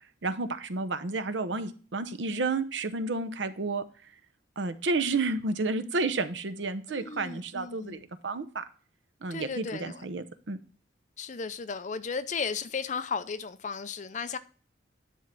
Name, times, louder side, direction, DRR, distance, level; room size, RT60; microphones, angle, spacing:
voice 1, 0.2-3.8 4.6-8.6 9.2-10.6, right 3 dB, 75° right, 10 dB, 0.7 m, -31 dB
voice 2, 6.9-8.0 9.3-10.0 11.2-14.4, left 5 dB, 40° left, 13 dB, 0.5 m, -35 dB
10.0 x 3.7 x 6.0 m, 0.40 s
head